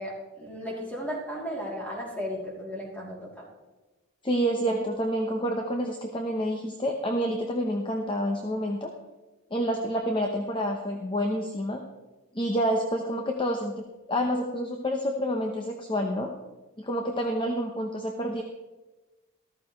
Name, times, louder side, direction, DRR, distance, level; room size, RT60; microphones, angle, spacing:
voice 1, 0.0-3.5, equal, 5° left, -3 dB, 3.0 m, -35 dB
voice 2, 4.2-8.9 9.5-11.8 12.3-13.7 14.1-16.3 16.8-18.4, equal, 25° left, 3 dB, 0.9 m, -28 dB
14.0 x 13.5 x 3.2 m, 1.2 s
head